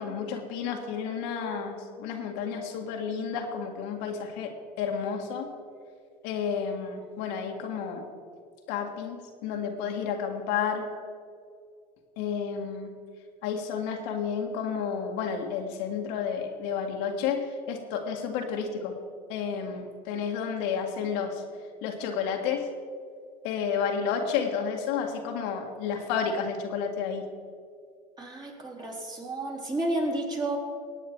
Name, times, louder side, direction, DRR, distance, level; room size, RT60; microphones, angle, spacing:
voice 1, 0.0-4.5 4.8-5.5 6.2-8.0 8.7-10.9 12.2-12.9 13.4-18.9 19.3-21.4 21.8-22.7 23.4-27.2, left 6 dB, 70° left, 2 dB, 1.8 m, -31 dB
voice 2, 28.2-30.6, right 1 dB, 20° right, -1 dB, 3.5 m, -31 dB
18.5 x 9.1 x 4.6 m, 2.2 s
hypercardioid pair, 90°, 20 cm